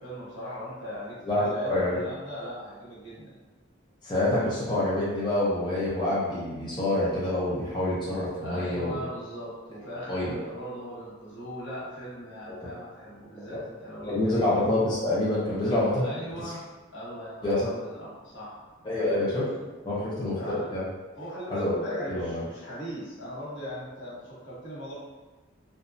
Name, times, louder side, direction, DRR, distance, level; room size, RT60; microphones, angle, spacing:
voice 1, 0.0-3.3 8.4-14.5 16.0-19.2 20.4-20.7 21.2-25.0, equal, 70° left, -7 dB, 1.0 m, -40 dB
voice 2, 1.2-2.0 4.0-9.0 10.1-10.4 12.6-12.7 13.5-13.6 14.1-16.0 17.4-17.7 18.8-19.4 19.8-20.8 21.5-22.4, left 1 dB, 25° left, -9 dB, 0.5 m, -27 dB
2.8 x 2.2 x 2.5 m, 1.2 s
head